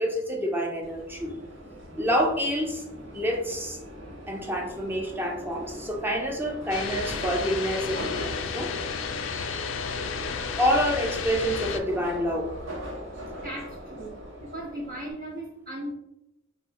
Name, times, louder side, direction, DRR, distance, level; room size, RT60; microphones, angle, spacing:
voice 1, 0.0-1.3 1.9-2.8 3.1-3.8 4.3-8.1 8.5-8.7 10.6-12.6, equal, 10° right, 1 dB, 0.5 m, -27 dB
Subway metro underground, 0.8-15.1, equal, 80° right, 0.9 m, -40 dB
sound 1, 6.7-11.8, left 6 dB, 85° left, 0.4 m, -32 dB
voice 2, 13.4-15.9, right 1 dB, 55° right, -7 dB, 0.8 m, -37 dB
3.6 x 2.0 x 4.0 m, 0.88 s
head